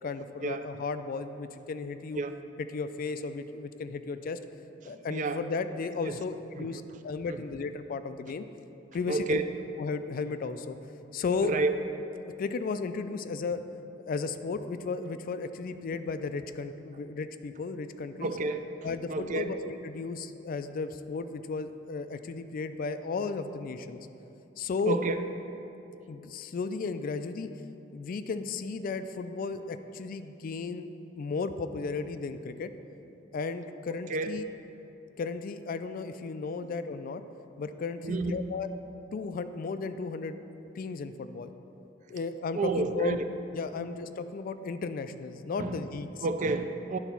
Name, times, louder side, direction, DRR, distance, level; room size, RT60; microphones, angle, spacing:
voice 1, 0.0-2.2 2.7-4.4 4.8-8.4 8.9-9.4 9.8-10.7 11.1-11.5 12.4-13.6 14.1-18.3 18.8-24.0 24.6-25.0 26.1-27.5 27.9-30.9 31.2-32.7 33.3-34.4 35.2-37.2 37.6-38.7 39.1-40.4 40.8-41.5 42.1-43.2 43.5-46.3, left 4 dB, 50° left, 11 dB, 0.3 m, -34 dB
voice 2, 4.8-5.4 6.1-6.2 6.7-6.8 7.3-7.4 9.1-9.5 11.4-11.7 18.2-18.7 19.1-19.5 24.9-25.2 34.1-34.3 38.0-38.5 42.5-43.2 43.8-43.9 45.6-45.8 46.2-47.0, right 3 dB, 40° right, 8 dB, 0.4 m, -30 dB
10.0 x 4.0 x 5.8 m, 2.9 s
head